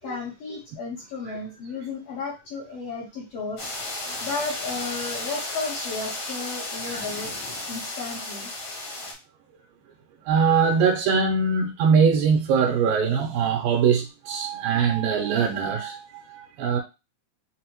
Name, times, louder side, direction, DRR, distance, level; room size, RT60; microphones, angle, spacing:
voice 1, 0.0-3.7 4.2-7.3 7.7-8.5, left 4 dB, 75° left, 1.5 m, -33 dB
sound 1, 3.6-9.1, left 2 dB, 60° left, 1.3 m, -33 dB
voice 2, 10.3-16.8, right 6 dB, 85° right, 2.4 m, -22 dB
6.0 x 2.0 x 2.9 m
omnidirectional pair, 4.0 m